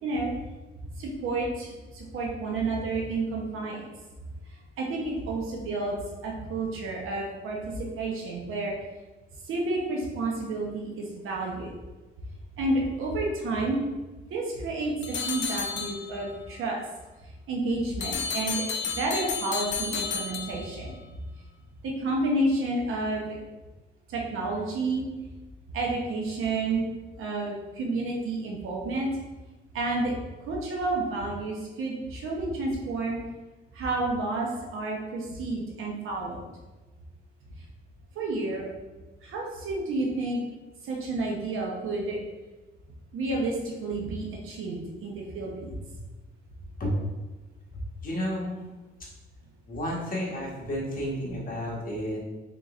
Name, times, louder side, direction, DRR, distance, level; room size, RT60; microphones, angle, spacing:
voice 1, 0.0-0.3 1.0-3.9 4.8-8.7 9.5-11.7 12.6-13.8 14.3-16.8 17.5-18.6 19.0-20.9 21.8-23.4 24.1-25.0 25.7-26.8 27.2-29.1 29.7-30.1 30.5-33.2 33.7-36.4 38.2-38.7 39.2-40.4 40.8-42.2 43.1-45.7, right 2 dB, 75° right, -1 dB, 0.9 m, -30 dB
sound 1, 15.0-16.4 18.0-21.0, left 6 dB, 60° left, 0.4 m, -32 dB
voice 2, 48.0-48.6 49.7-52.2, equal, 40° left, -4 dB, 1.4 m, -31 dB
3.9 x 3.7 x 2.5 m, 1.2 s
cardioid pair, 95°, 21 cm